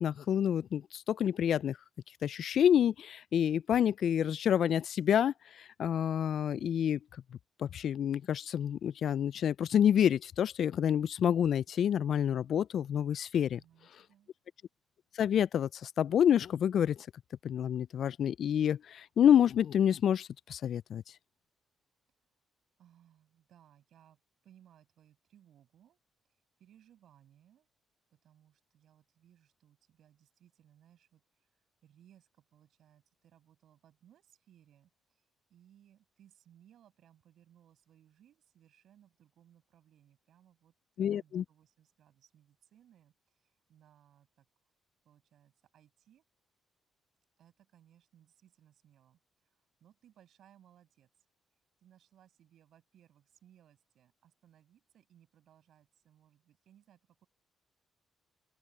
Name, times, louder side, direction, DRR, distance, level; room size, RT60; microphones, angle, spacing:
voice 1, 0.0-1.8 2.2-7.0 7.6-13.6 15.2-17.0 17.4-21.0 41.0-41.4, left 9 dB, 65° left, 0.3 m, -28 dB
voice 2, 13.4-14.3 22.8-26.0 26.3-27.7 28.1-31.5 31.8-35.2 35.5-44.5 45.0-46.2 47.4-51.1 51.8-57.3, right 10 dB, 70° right, 5.9 m, -64 dB
open air
cardioid pair, 90°, 0 cm